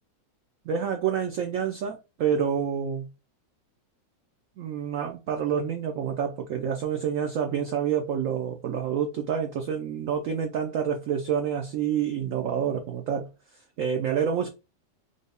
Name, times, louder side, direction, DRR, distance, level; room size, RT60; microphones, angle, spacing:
voice 1, 0.7-3.1 4.6-13.3 13.8-14.5, right 7 dB, 90° right, 0.7 m, -28 dB
3.9 x 2.0 x 3.4 m
omnidirectional pair, 1.9 m